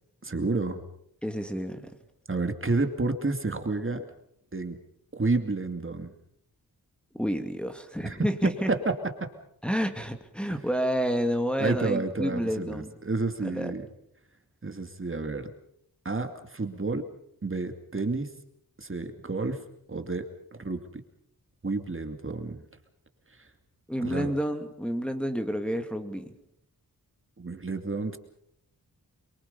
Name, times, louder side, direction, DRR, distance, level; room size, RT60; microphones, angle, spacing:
voice 1, 0.2-0.8 2.3-4.1 4.5-4.8 5.1-6.1 8.0-9.3 10.5-10.6 11.6-13.9 14.6-15.5 16.0-17.1 17.4-18.3 18.8-19.6 19.9-20.3 20.6-21.0 21.6-22.6 23.3-23.5 24.0-24.3 27.4-28.2, right 3 dB, 35° right, 6 dB, 2.5 m, -30 dB
voice 2, 1.2-1.9 7.1-8.7 9.6-12.9 13.4-13.7 23.9-26.3, equal, 5° left, 5 dB, 2.4 m, -29 dB
27.5 x 24.0 x 5.5 m, 0.72 s
wide cardioid pair, 75°, 36 cm